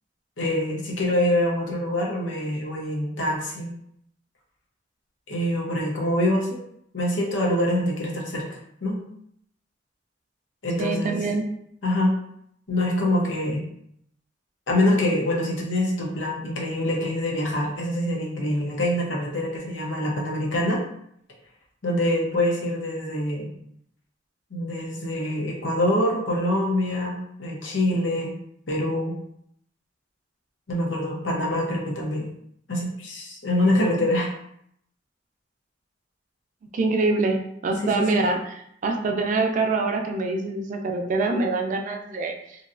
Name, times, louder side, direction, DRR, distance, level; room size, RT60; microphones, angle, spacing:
voice 1, 0.4-3.7 5.3-6.6 6.9-9.0 10.6-11.3 11.8-12.1 12.7-13.7 14.7-20.8 21.8-23.5 24.5-28.3 28.7-29.1 30.7-32.3 32.7-34.3 37.8-38.2, left 1 dB, 80° left, -2 dB, 0.8 m, -25 dB
voice 2, 10.8-11.4 36.7-37.4 37.6-38.4 38.8-42.3, right 3 dB, 45° right, 3 dB, 0.3 m, -24 dB
3.0 x 2.6 x 2.5 m, 0.71 s
head